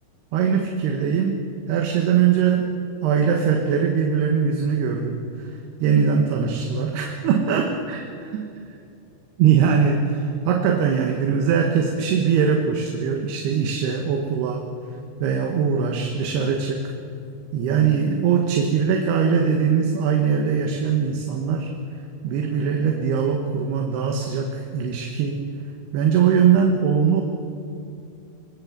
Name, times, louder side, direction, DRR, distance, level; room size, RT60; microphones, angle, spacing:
voice 1, 0.3-1.4 1.7-2.7 3.0-5.2 5.8-8.5 9.4-14.6 15.2-16.8 17.5-21.7 22.2-25.5 25.9-27.2, right 7 dB, 75° right, 2 dB, 3.3 m, -21 dB
26.5 x 20.5 x 7.3 m, 2.6 s
omnidirectional pair, 4.7 m